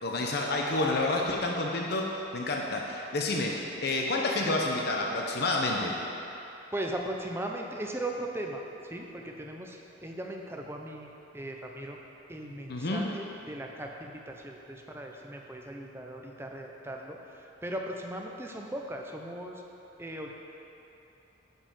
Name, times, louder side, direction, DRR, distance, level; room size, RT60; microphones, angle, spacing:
voice 1, 0.0-5.9 12.7-13.1, left 2 dB, 55° left, 0 dB, 0.8 m, -29 dB
voice 2, 6.7-12.0 12.3-19.6 20.0-20.3, right 1 dB, 10° right, 1 dB, 0.6 m, -38 dB
10.0 x 5.5 x 5.5 m, 3.0 s
head